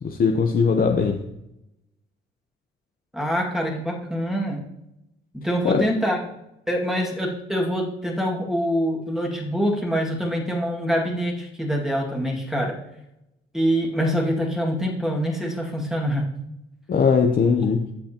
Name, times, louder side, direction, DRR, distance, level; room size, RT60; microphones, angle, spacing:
voice 1, 0.0-1.2 5.6-5.8 16.9-17.9, left 5 dB, 45° left, 4 dB, 0.8 m, -20 dB
voice 2, 3.1-4.6 5.3-6.2 6.7-12.8 13.5-16.3 17.5-17.6, equal, ahead, -1 dB, 2.1 m, -25 dB
14.0 x 6.3 x 2.9 m, 0.86 s
cardioid pair, 90°, 20 cm